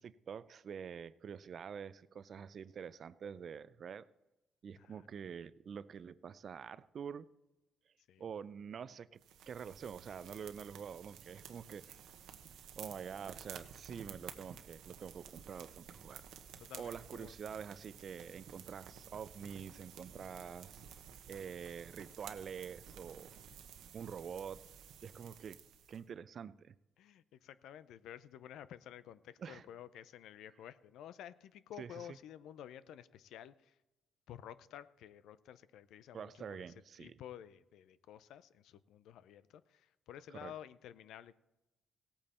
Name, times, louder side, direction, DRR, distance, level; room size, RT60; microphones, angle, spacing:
voice 1, 0.0-4.1 4.6-7.3 8.2-9.2 9.5-12.0 12.8-16.3 16.7-20.8 21.3-23.3 23.9-24.6 25.0-25.6 25.9-26.8 29.4-29.7 31.8-31.9 36.1-37.2 40.3-40.5, right 7 dB, 55° right, 17 dB, 0.5 m, -46 dB
voice 2, 4.8-5.1 8.1-8.2 16.6-17.3 20.2-20.5 27.0-33.8 34.3-41.3, left 10 dB, 85° left, 15 dB, 0.5 m, -52 dB
sound 1, 9.2-26.0, right 8 dB, 85° right, 1.0 m, -53 dB
17.0 x 8.7 x 4.3 m, 1.0 s
cardioid pair, 90°, 0 cm